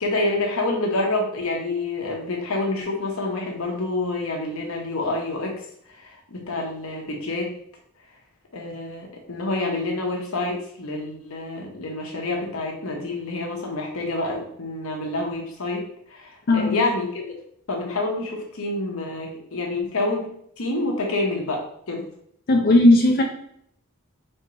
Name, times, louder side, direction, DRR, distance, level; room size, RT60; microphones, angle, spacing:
voice 1, 0.0-7.5 8.5-17.4 17.7-20.3 20.6-22.1, left 2 dB, 65° left, 0 dB, 0.9 m, -28 dB
voice 2, 16.5-16.9 22.5-23.2, left 1 dB, 45° left, 0 dB, 0.4 m, -16 dB
4.5 x 3.5 x 2.9 m, 0.68 s
head